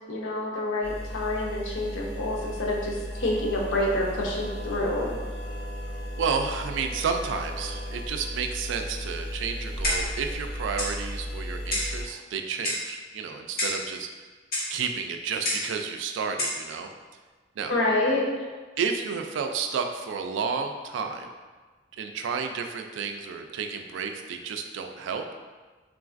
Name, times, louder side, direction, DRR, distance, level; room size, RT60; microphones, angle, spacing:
voice 1, 0.1-5.1 17.7-18.5, left 1 dB, 85° left, -2 dB, 0.6 m, -27 dB
sound 1, 0.8-12.0, equal, 5° left, 0.7 m, -36 dB
sound 2, 3.1-8.1, equal, 35° right, 1.1 m, -45 dB
voice 2, 6.2-14.1 14.7-16.9 17.6-17.7 18.8-21.3 22.0-25.2, right 5 dB, 75° right, 5 dB, 0.3 m, -31 dB
Clock, 9.8-10.2 10.8-11.0 11.7-12.0 12.6-12.9 13.6-13.9 14.5-14.7 15.4-15.7 16.4-16.6, left 1 dB, 50° left, 0.8 m, -28 dB
3.7 x 2.4 x 2.4 m, 1.3 s
head